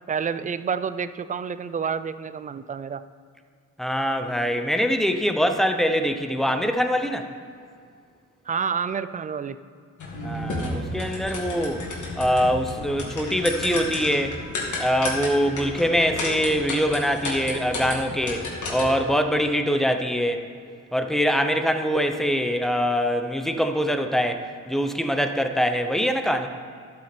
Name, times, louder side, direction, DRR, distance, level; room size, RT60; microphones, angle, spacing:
voice 1, 0.1-3.0 8.5-9.6, right 6 dB, 25° right, 14 dB, 0.4 m, -29 dB
voice 2, 3.8-7.3 10.2-11.9 12.2-14.4 14.8-20.5 20.9-26.5, equal, ahead, 6 dB, 0.7 m, -23 dB
sound 1, 10.0-19.1, left 2 dB, 70° left, 2.3 m, -32 dB
11.5 x 6.1 x 4.4 m, 2.2 s
cardioid pair, 90°, 30 cm